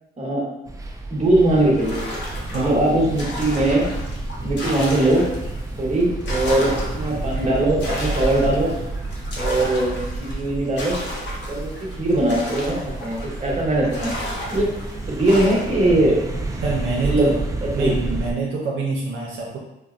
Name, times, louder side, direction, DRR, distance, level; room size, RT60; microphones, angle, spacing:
voice 1, 0.2-0.5 1.1-2.0 2.5-3.9 4.4-5.3 5.8-8.7 9.4-11.0 11.5-14.1 14.5-16.2 17.0-18.0, right 1 dB, 35° right, -4 dB, 1.0 m, -21 dB
sound 1, 0.7-18.3, right 2 dB, 15° right, 0.4 m, -30 dB
sound 2, 1.8-5.6 6.0-13.5 13.9-15.9, left 1 dB, 65° left, 0.7 m, -33 dB
voice 2, 16.6-17.3 17.7-19.6, right 4 dB, 80° right, -3 dB, 0.6 m, -26 dB
3.8 x 2.0 x 2.4 m, 0.91 s
cardioid pair, 90°, 20 cm